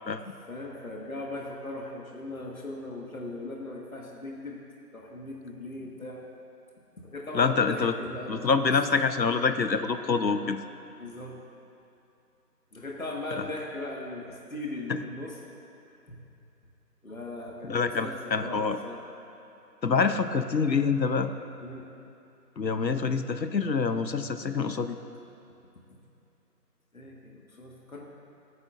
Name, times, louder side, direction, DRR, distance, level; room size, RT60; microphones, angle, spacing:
voice 1, 0.5-4.6 4.9-6.2 7.0-8.7 11.0-11.3 12.7-15.3 16.1-16.2 17.0-19.1 21.6-21.9 26.9-28.0, left 2 dB, 55° left, -1 dB, 1.6 m, -39 dB
voice 2, 7.3-7.9 8.3-10.6 13.3-13.5 17.6-18.8 19.8-21.3 22.6-25.0, left 5 dB, 85° left, 9 dB, 0.9 m, -26 dB
28.0 x 9.6 x 2.5 m, 2.8 s
figure-of-eight pair, 175°, 50 cm